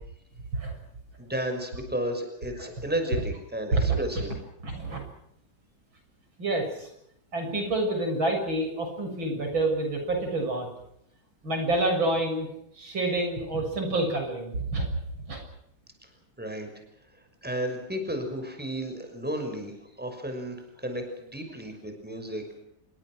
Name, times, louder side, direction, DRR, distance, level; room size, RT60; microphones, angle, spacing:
voice 1, 1.2-4.3 16.4-16.7 17.4-22.4, equal, 5° right, 5 dB, 6.0 m, -33 dB
voice 2, 3.7-4.2 4.6-5.0 6.4-6.9 7.3-10.7 11.4-14.9 15.3-15.4, right 2 dB, 85° right, 4 dB, 7.9 m, -28 dB
28.0 x 23.5 x 6.3 m, 0.76 s
omnidirectional pair, 2.1 m